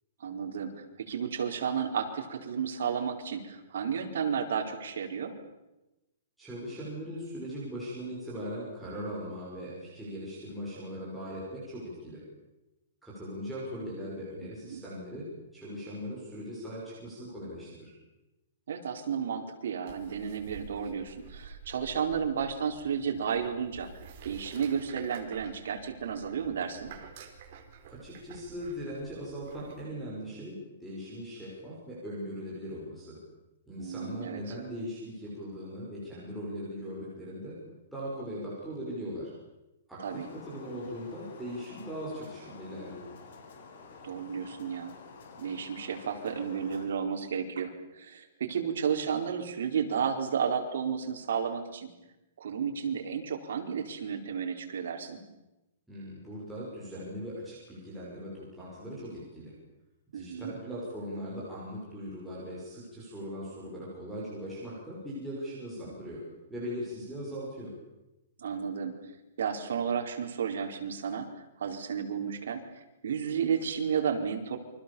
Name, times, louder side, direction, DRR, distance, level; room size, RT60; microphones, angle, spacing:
voice 1, 0.2-5.3 14.4-14.8 18.7-23.9 24.2-26.9 33.8-34.4 40.0-40.3 44.0-44.9 45.4-51.9 52.4-55.2 60.1-60.6 68.4-69.0 69.4-74.6, right 7 dB, 65° right, 4 dB, 4.6 m, -32 dB
voice 2, 6.4-12.2 13.0-15.3 15.5-17.9 27.9-33.2 33.7-37.6 37.9-39.3 39.9-43.0 55.9-59.5 60.1-66.2 66.5-67.7, equal, ahead, -9 dB, 6.2 m, -39 dB
sound 1, 19.9-29.8, right 6 dB, 35° right, 4.0 m, -50 dB
sound 2, 40.0-46.9, left 4 dB, 55° left, 7.0 m, -50 dB
29.0 x 25.0 x 7.2 m, 0.99 s
hypercardioid pair, 180°, 0 cm